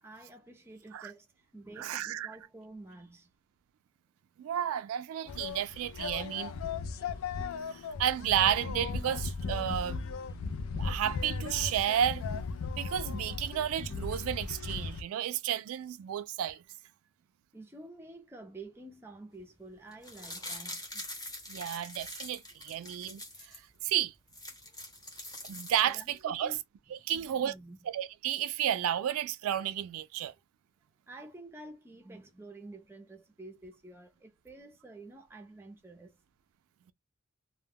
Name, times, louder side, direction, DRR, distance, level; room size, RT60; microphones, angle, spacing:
voice 1, 0.0-3.3 6.9-7.2 17.5-21.1 22.6-23.0 24.6-24.8 25.8-26.6 27.1-27.8 31.1-36.2, right 2 dB, 10° right, 0.4 m, -50 dB
voice 2, 1.8-2.3 4.4-6.5 7.7-10.0 10.8-12.2 12.8-16.6 21.5-23.2 23.5-23.6 23.8-24.1 25.5-26.5 26.9-27.5 27.9-30.3, right 10 dB, 85° right, 0.3 m, -32 dB
sound 1, 5.3-15.0, left 4 dB, 80° left, 0.4 m, -37 dB
sound 2, 19.9-23.6 24.0-24.1 24.3-26.2 26.5-26.6, left 1 dB, 15° left, 0.8 m, -44 dB
2.1 x 2.1 x 3.3 m
head